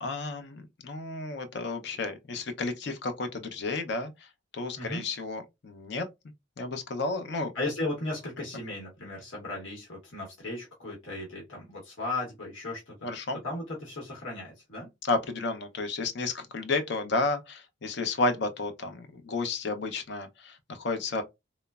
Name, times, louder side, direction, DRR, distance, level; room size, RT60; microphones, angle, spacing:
voice 1, 0.0-4.3 4.5-6.1 6.6-7.5 13.0-13.4 15.0-21.2, left 3 dB, 60° left, 0.5 m, -32 dB
voice 2, 7.5-12.9 13.4-14.9, left 2 dB, 90° left, 0.9 m, -36 dB
3.0 x 2.0 x 2.3 m
head